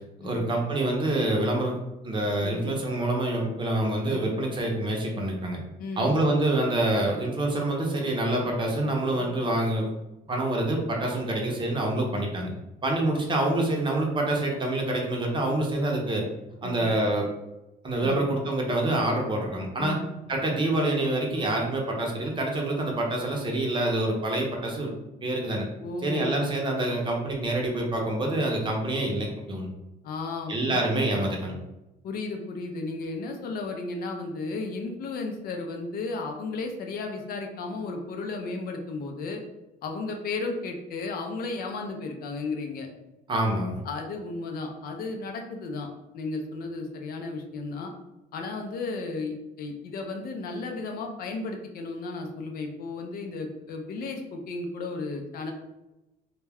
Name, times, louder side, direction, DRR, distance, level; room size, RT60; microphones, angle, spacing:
voice 1, 0.2-1.8 2.0-5.6 6.0-9.9 10.3-12.5 12.8-16.2 16.6-17.3 17.8-20.0 20.3-24.9 25.2-25.6 26.0-29.7 30.5-31.5 43.3-43.8, right 1 dB, 30° right, 0 dB, 0.6 m, -26 dB
voice 2, 5.8-6.1 16.6-16.8 18.0-18.2 19.8-20.0 25.8-26.4 30.0-30.9 32.0-39.4 39.8-42.9 43.8-47.9 48.3-55.5, left 3 dB, 60° left, 3 dB, 0.5 m, -34 dB
2.2 x 2.1 x 3.4 m, 0.96 s
cardioid pair, 110°, 17 cm